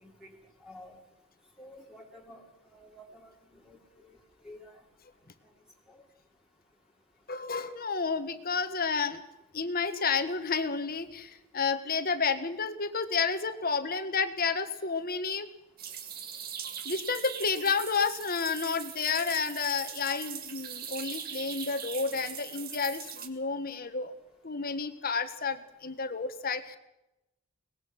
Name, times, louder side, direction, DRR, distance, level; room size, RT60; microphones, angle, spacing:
voice 1, 0.0-0.3 0.6-1.0 1.6-2.4 2.7-3.3 3.7-3.8 4.0-4.2 4.4-4.7 5.9-6.0 22.1-22.2, left 1 dB, 5° right, -1 dB, 3.2 m, -50 dB
voice 2, 7.3-9.2 9.5-15.5 16.8-24.1 24.4-26.8, left 5 dB, 45° left, 10 dB, 1.6 m, -31 dB
sound 1, 15.8-23.3, right 8 dB, 45° right, 2.0 m, -41 dB
23.0 x 20.0 x 6.1 m, 0.91 s
head